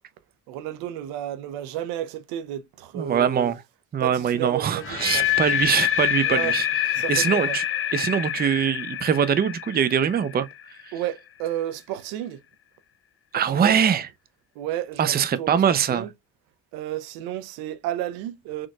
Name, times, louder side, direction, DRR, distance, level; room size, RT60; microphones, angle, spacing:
voice 1, 0.5-3.5 4.0-5.3 6.2-6.6 6.9-7.6 10.9-12.4 13.3-13.8 14.6-16.1 16.7-18.7, right 12 dB, 80° right, 0.7 m, -32 dB
voice 2, 2.9-3.6 3.9-6.7 7.1-7.6 7.9-10.5 13.3-14.1 15.0-16.1, right 8 dB, 25° right, 0.5 m, -22 dB
sound 1, 4.8-10.8, left 11 dB, 35° left, 0.5 m, -26 dB
4.2 x 3.0 x 2.3 m
supercardioid pair, 65°, 37 cm